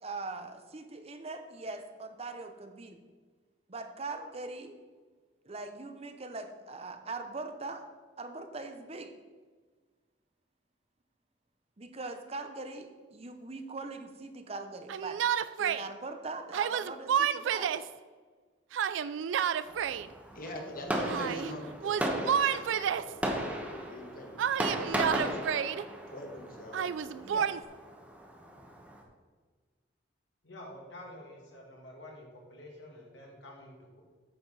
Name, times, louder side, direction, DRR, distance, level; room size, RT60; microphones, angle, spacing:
voice 1, 0.0-3.0 3.7-4.7 5.4-7.8 8.2-9.1 11.8-15.2 15.6-17.7 27.2-27.5, right 3 dB, 35° right, 7 dB, 0.7 m, -41 dB
Yell, 14.9-15.9 16.5-17.9 18.7-20.1 21.0-21.5 21.8-23.2 24.4-25.8 26.7-27.6, right 8 dB, 85° right, 0.3 m, -30 dB
Fireworks, 19.7-29.0, right 1 dB, 5° right, 1.1 m, -37 dB
voice 2, 20.3-24.6 24.8-25.4 26.1-27.4, equal, 50° left, 3 dB, 1.4 m, -44 dB
voice 3, 30.4-34.0, left 1 dB, 75° left, -1 dB, 2.3 m, -49 dB
9.5 x 6.7 x 4.0 m, 1.5 s
head